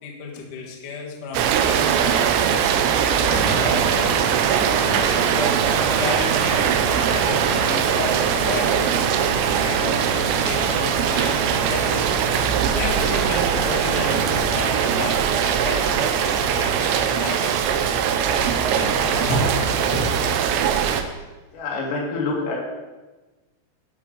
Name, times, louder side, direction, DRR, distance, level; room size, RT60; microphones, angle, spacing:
voice 1, 0.0-4.3 4.8-8.9 9.6-12.1 12.6-18.5 18.7-19.4, left 4 dB, 65° left, -2 dB, 2.1 m, -33 dB
Rain, 1.3-21.0, right 8 dB, 85° right, 2.5 m, -21 dB
sound 1, 3.0-17.0, right 1 dB, 5° right, 1.4 m, -32 dB
sound 2, 8.1-20.2, left 1 dB, 45° left, 3.4 m, -34 dB
voice 2, 21.5-22.6, left 3 dB, 80° left, -3 dB, 4.7 m, -26 dB
13.0 x 5.2 x 5.2 m, 1.2 s
omnidirectional pair, 5.9 m